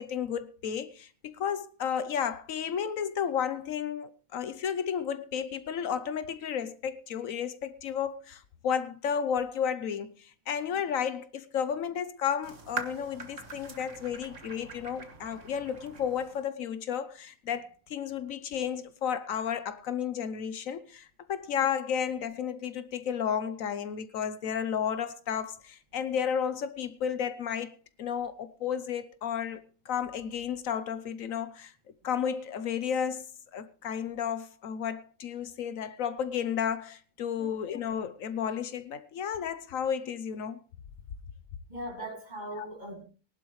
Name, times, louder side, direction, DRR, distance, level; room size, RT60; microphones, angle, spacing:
voice 1, 0.0-31.7 32.0-33.3 33.5-40.6 42.0-42.1 42.6-42.7, left 8 dB, 75° left, 1.2 m, -32 dB
sound 1, 12.4-16.4, right 4 dB, 60° right, 1.9 m, -42 dB
voice 2, 41.7-43.0, right 1 dB, 30° right, 2.8 m, -40 dB
19.5 x 11.5 x 3.1 m
omnidirectional pair, 1.4 m